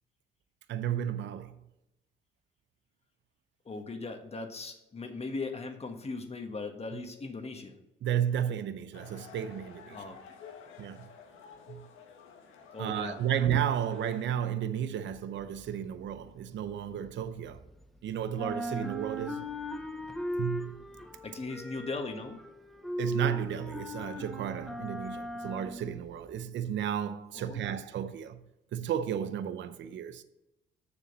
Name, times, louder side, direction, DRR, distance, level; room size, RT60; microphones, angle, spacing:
voice 1, 0.7-1.6 8.0-10.0 10.8-11.1 11.7-11.8 12.8-17.6 18.0-19.5 20.4-20.8 23.0-28.4 28.7-30.2, right 9 dB, 70° right, 0.7 m, -33 dB
voice 2, 3.6-7.8 9.9-10.2 10.7-10.8 12.7-13.2 21.2-22.4 27.3-27.8, left 3 dB, 30° left, 1.5 m, -39 dB
sound 1, 8.9-14.2, left 6 dB, 90° left, 1.3 m, -51 dB
sound 2, 15.2-18.0 18.3-26.4, equal, ahead, 0.8 m, -38 dB
7.0 x 6.7 x 6.6 m
cardioid pair, 90°, 20 cm